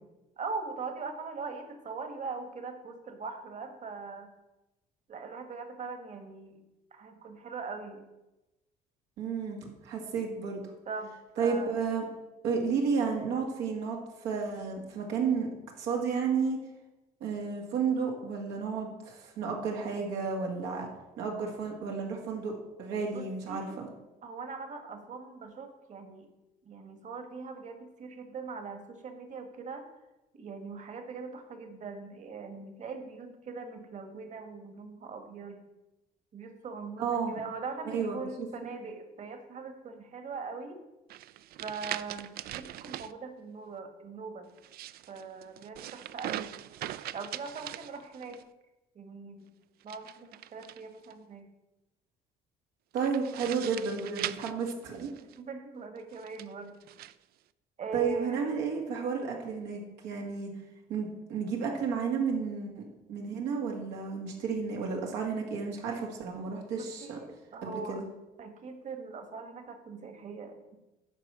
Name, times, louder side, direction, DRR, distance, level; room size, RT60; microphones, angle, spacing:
voice 1, 0.4-4.3 5.1-6.6 6.9-8.0 10.9-11.8 23.1-23.7 24.2-26.3 26.6-29.9 30.3-35.6 36.3-40.8 41.6-44.5 45.1-46.6 47.1-48.4 48.9-49.4 49.8-51.5 55.2-56.8 57.8-58.5 66.7-68.0 68.4-70.8, right 4 dB, 45° right, 7 dB, 1.5 m, -41 dB
voice 2, 9.2-10.6 11.4-12.0 12.4-15.5 15.8-16.6 17.2-20.9 21.2-22.5 22.8-23.9 37.0-37.3 37.9-38.2 52.9-55.1 57.9-60.5 60.9-62.8 63.1-67.2 67.6-68.1, right 5 dB, 90° right, 1 dB, 2.0 m, -32 dB
sound 1, 41.1-43.1 44.5-48.4 49.8-51.1 53.0-55.4 56.1-57.1, right 13 dB, 65° right, 0.4 m, -41 dB
10.5 x 4.6 x 7.4 m, 1.0 s
cardioid pair, 110°, 17 cm